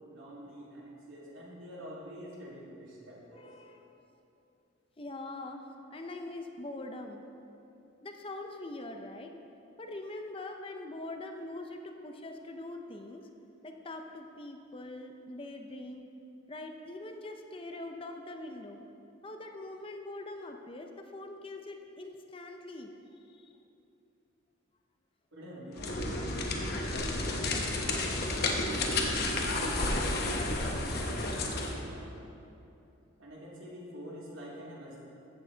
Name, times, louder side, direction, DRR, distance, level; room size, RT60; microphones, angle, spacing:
voice 1, 0.1-3.5 25.3-28.9 29.6-32.1 33.2-35.0, equal, 85° right, -5 dB, 2.5 m, -46 dB
voice 2, 3.3-3.8 5.0-5.6 5.9-7.2 8.0-9.3 9.8-13.3 13.6-16.1 16.5-18.8 19.2-22.9 23.2-23.5, left 2 dB, 25° left, 4 dB, 0.6 m, -43 dB
sound 1, 25.7-31.8, left 2 dB, 50° left, 1.0 m, -31 dB
15.0 x 7.1 x 3.9 m, 2.8 s
head